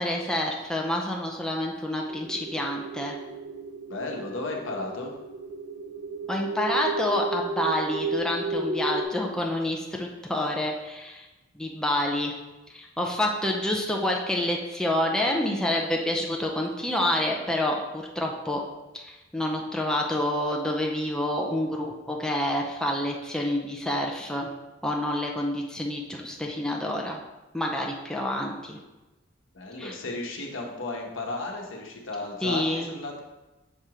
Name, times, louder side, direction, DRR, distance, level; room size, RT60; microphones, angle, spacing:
voice 1, 0.0-3.2 6.3-11.3 11.5-12.3 12.7-18.6 18.9-24.5 24.8-27.2 27.5-28.8 29.8-30.0 32.4-32.9, left 1 dB, 5° left, -1 dB, 0.5 m, -28 dB
sound 1, 2.1-9.0, right 3 dB, 25° right, 1.0 m, -33 dB
voice 2, 3.9-5.1 29.5-33.2, left 2 dB, 80° left, 1 dB, 1.0 m, -34 dB
6.6 x 2.9 x 4.8 m, 1.1 s
head